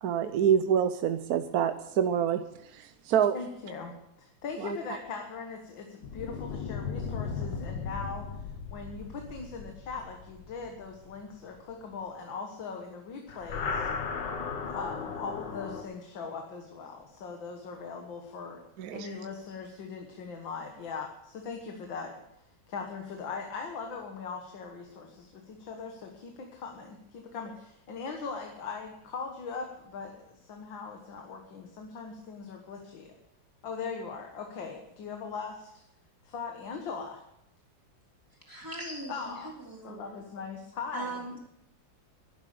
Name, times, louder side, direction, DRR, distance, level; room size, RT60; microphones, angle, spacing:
voice 1, 0.0-2.4 2.7-3.4 4.6-4.8 18.8-19.1, right 8 dB, 65° right, 9 dB, 1.0 m, -26 dB
voice 2, 3.3-8.4 8.7-13.9 14.7-18.6 18.9-22.2 22.7-33.1 33.6-35.8 36.2-37.2 39.1-39.6 39.8-41.2, left 5 dB, 85° left, 3 dB, 2.2 m, -40 dB
sound 1, 6.0-11.6 13.3-15.8, left 5 dB, 70° left, 1.9 m, -36 dB
voice 3, 38.5-40.2 40.9-41.4, right 2 dB, 10° right, -2 dB, 3.4 m, -40 dB
12.0 x 11.0 x 6.8 m, 0.80 s
omnidirectional pair, 2.0 m